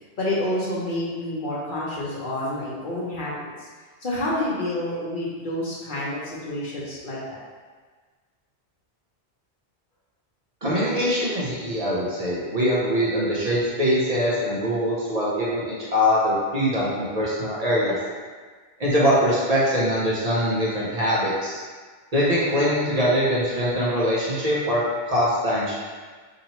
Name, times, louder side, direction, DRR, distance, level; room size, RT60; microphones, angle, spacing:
voice 1, 0.2-3.7 4.0-7.4, left 1 dB, 55° left, -6 dB, 1.0 m, -28 dB
voice 2, 10.6-17.9 18.8-21.6 22.1-24.8 25.1-25.8, equal, 40° right, -7 dB, 0.7 m, -23 dB
4.1 x 2.8 x 3.0 m, 1.5 s
omnidirectional pair, 1.1 m